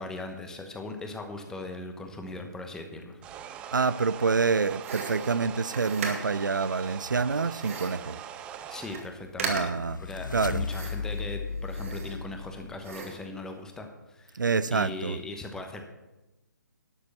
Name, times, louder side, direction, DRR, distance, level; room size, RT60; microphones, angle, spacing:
voice 1, 0.0-3.2 8.6-9.7 10.0-14.4 14.7-15.8, left 2 dB, 5° left, 1.0 m, -39 dB
sound 1, 3.2-9.1, right 9 dB, 10° right, 0.3 m, -42 dB
voice 2, 3.7-8.2 9.5-10.0 10.3-10.7 14.3-15.2, right 4 dB, 75° right, 0.5 m, -27 dB
sound 2, 4.8-6.5 7.6-8.1 8.5-8.6 8.8-9.1 9.4-9.9 10.7-11.2 11.6-12.5 12.8-13.3, right 4 dB, 45° right, 2.1 m, -37 dB
Reverse Door Slam, 8.9-13.2, left 5 dB, 70° left, 0.4 m, -36 dB
12.0 x 6.7 x 7.0 m
figure-of-eight pair, 135°, 10 cm